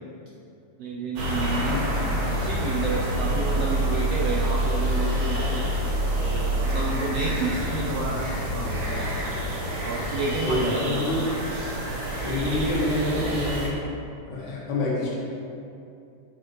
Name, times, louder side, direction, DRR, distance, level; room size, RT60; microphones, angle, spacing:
voice 1, 0.8-2.0 2.3-5.8 6.2-9.2 9.8-11.4, right 3 dB, 85° right, -2 dB, 1.4 m, -30 dB
sound 1, 1.2-13.7, right 1 dB, 55° right, 1.5 m, -27 dB
voice 2, 1.7-2.0 10.4-11.3 12.2-13.8 14.3-15.2, left 2 dB, 85° left, -5 dB, 2.5 m, -27 dB
8.6 x 4.9 x 3.1 m, 2.6 s
omnidirectional pair, 3.4 m